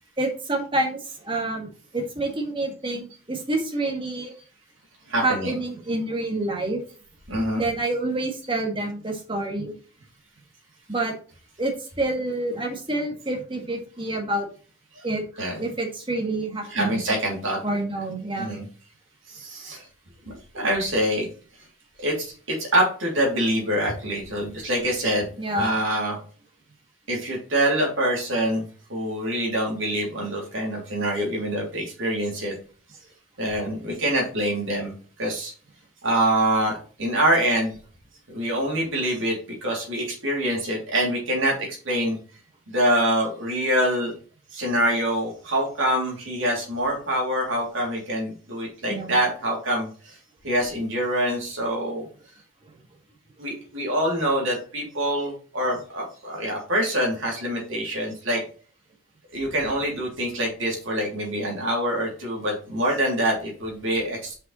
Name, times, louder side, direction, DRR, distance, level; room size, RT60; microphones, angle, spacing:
voice 1, 0.2-1.0 1.2-1.7 1.9-4.3 5.2-6.8 7.6-9.7 10.9-11.1 11.6-14.5 15.0-15.2 15.6-17.0 17.6-18.5 25.4-25.7 48.9-49.2, right 2 dB, 25° right, 1 dB, 1.7 m, -27 dB
voice 2, 5.1-5.6 7.3-7.7 14.9-15.1 15.4-15.6 16.6-17.6 18.3-18.7 19.3-19.8 20.3-21.3 22.0-25.3 25.5-26.2 27.1-32.5 33.4-34.9 35.2-35.5 36.0-37.8 38.3-42.2 42.7-44.1 44.5-50.2 50.4-52.0 53.4-58.4 59.3-64.3, right 1 dB, 60° right, -1 dB, 3.0 m, -25 dB
5.8 x 5.4 x 4.1 m, 0.41 s
head